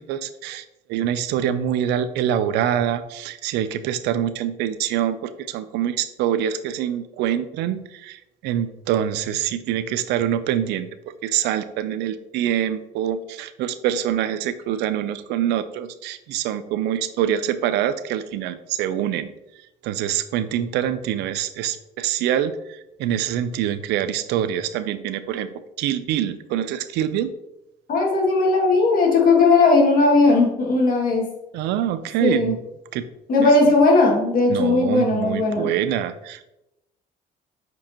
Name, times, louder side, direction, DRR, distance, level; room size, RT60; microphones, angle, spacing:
voice 1, 0.0-10.9 11.2-19.3 19.8-25.5 25.8-27.3 31.5-32.6 32.9-33.1 33.4-33.7 34.5-36.4, right 10 dB, 85° right, 12 dB, 0.5 m, -25 dB
voice 2, 27.9-31.3 32.2-32.5 33.3-35.7, left 3 dB, 55° left, -1 dB, 2.1 m, -17 dB
7.4 x 4.6 x 2.9 m, 0.90 s
cardioid pair, 110°, 17 cm